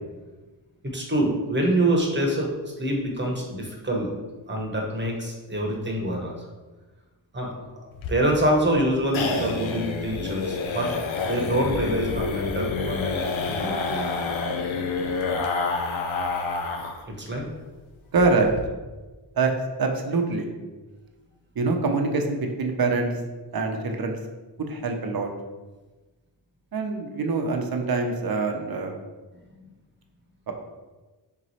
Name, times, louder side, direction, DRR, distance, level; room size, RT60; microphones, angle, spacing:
voice 1, 0.8-4.1 4.5-6.3 7.3-11.0 11.3-14.1 14.7-14.8 17.2-17.5, right 1 dB, 25° right, 0 dB, 1.1 m, -26 dB
sound 1, 7.9-17.0 17.3-17.4 17.7-17.8 18.2-18.6, left 4 dB, 85° left, 0.6 m, -28 dB
voice 2, 18.1-18.5 19.4-19.5 19.8-20.5 21.6-23.1 23.5-24.2 24.6-25.3 26.7-29.0 30.5-30.6, right 3 dB, 50° right, 4 dB, 0.7 m, -24 dB
3.7 x 3.1 x 4.2 m, 1.2 s
cardioid pair, 60°, 46 cm